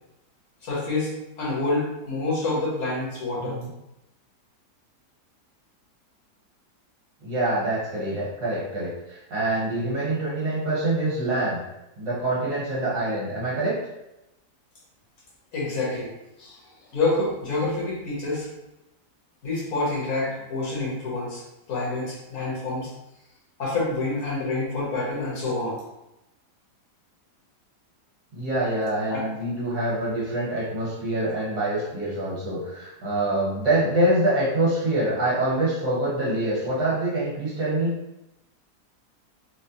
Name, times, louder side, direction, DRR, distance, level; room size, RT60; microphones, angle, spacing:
voice 1, 0.6-3.6 15.5-16.1 16.4-16.6 16.9-18.5 19.4-22.9 23.6-25.8 29.1-29.2, left 2 dB, 55° left, -5 dB, 1.3 m, -27 dB
voice 2, 3.4-3.7 7.2-11.6 12.0-13.8 28.3-38.0, right 1 dB, 70° right, -7 dB, 1.7 m, -25 dB
4.2 x 2.1 x 2.7 m, 0.93 s
omnidirectional pair, 1.8 m